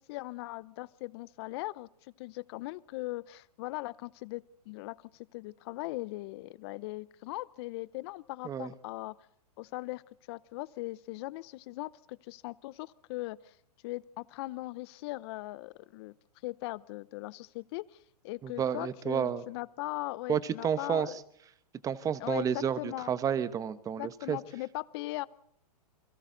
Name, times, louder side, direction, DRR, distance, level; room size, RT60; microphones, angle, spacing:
voice 1, 0.0-9.1 9.6-10.0 10.3-13.6 13.8-16.1 16.4-18.0 18.2-21.2 22.2-23.1 24.0-25.3, left 20 dB, 40° left, 20 dB, 0.8 m, -39 dB
voice 2, 18.4-19.4 20.3-21.1 21.8-24.4, right 8 dB, 15° right, 15 dB, 1.1 m, -31 dB
30.0 x 22.5 x 4.0 m, 0.68 s
hypercardioid pair, 135°, 20 cm